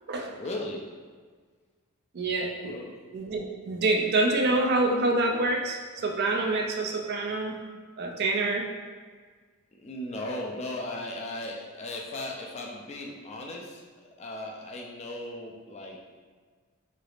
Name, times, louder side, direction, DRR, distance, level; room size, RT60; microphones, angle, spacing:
voice 1, 0.4-0.9 2.6-3.0 9.7-16.0, left 1 dB, 30° left, -1 dB, 0.4 m, -37 dB
voice 2, 2.1-2.7 3.1-7.6 8.0-8.7, right 2 dB, 45° right, 1 dB, 0.4 m, -26 dB
3.9 x 3.3 x 2.4 m, 1.5 s
head